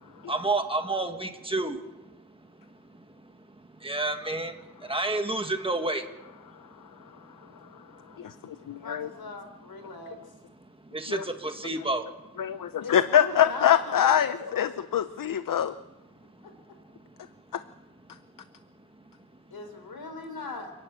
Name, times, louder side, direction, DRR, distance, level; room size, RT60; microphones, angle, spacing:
voice 1, 0.0-8.8 9.8-9.9 10.6-12.8 16.2-17.3 18.1-18.4 18.9-19.1, right 2 dB, 15° right, 6 dB, 1.6 m, -33 dB
voice 2, 8.2-9.1 11.1-11.2 12.4-15.7 17.5-17.6, left 9 dB, 65° left, 12 dB, 0.7 m, -24 dB
voice 3, 8.8-10.2 12.8-13.8 14.4-14.9 19.5-20.7, left 3 dB, 90° left, 7 dB, 4.0 m, -39 dB
29.0 x 11.0 x 8.8 m, 1.1 s
wide cardioid pair, 165°, 35 cm